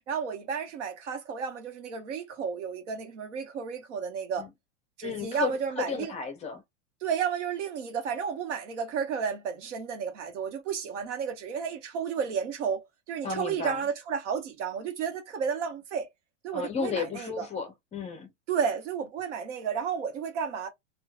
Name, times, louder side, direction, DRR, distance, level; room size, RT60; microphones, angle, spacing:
voice 1, 0.1-4.5 5.0-6.1 7.0-16.1 16.4-17.5 18.5-20.7, right 6 dB, 80° right, 1.0 m, -32 dB
voice 2, 5.0-6.6 13.2-13.8 16.5-18.3, left 5 dB, 20° left, 0.5 m, -33 dB
3.1 x 2.3 x 2.3 m
supercardioid pair, 140°, 36 cm